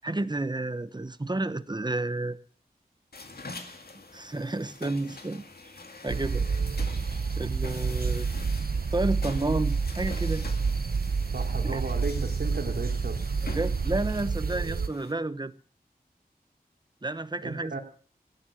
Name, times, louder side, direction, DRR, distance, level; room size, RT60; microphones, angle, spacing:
voice 1, 0.0-2.4 3.4-3.6 4.1-5.4 6.0-6.5 7.4-8.5 8.9-10.5 11.6-11.8 13.4-15.5 17.0-17.8, right 2 dB, 25° right, 14 dB, 1.0 m, -31 dB
sound 1, 3.1-15.1, left 3 dB, 75° left, 2.1 m, -45 dB
sound 2, 6.1-14.9, right 5 dB, 70° right, 0.8 m, -29 dB
voice 2, 11.3-13.2 17.4-17.8, right 3 dB, 85° right, 2 dB, 3.2 m, -34 dB
16.5 x 10.5 x 6.4 m, 0.42 s
wide cardioid pair, 50°, 16 cm